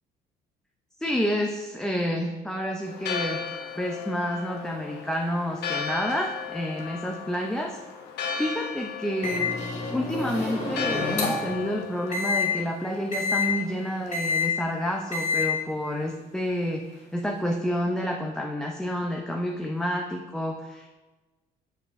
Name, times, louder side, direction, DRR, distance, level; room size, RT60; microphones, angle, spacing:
voice 1, 1.0-3.4 3.8-7.8 8.4-9.6 9.9-20.9, equal, 5° left, 1 dB, 0.5 m, -29 dB
Church bell, 2.9-14.4, left 6 dB, 75° left, 0.9 m, -36 dB
Microwave oven, 9.2-11.6 12.1-12.4 13.1-13.5 14.1-14.5 15.1-15.5, left 4 dB, 40° left, 2.0 m, -27 dB
7.2 x 5.4 x 2.5 m, 1.2 s
cardioid pair, 110°, 17 cm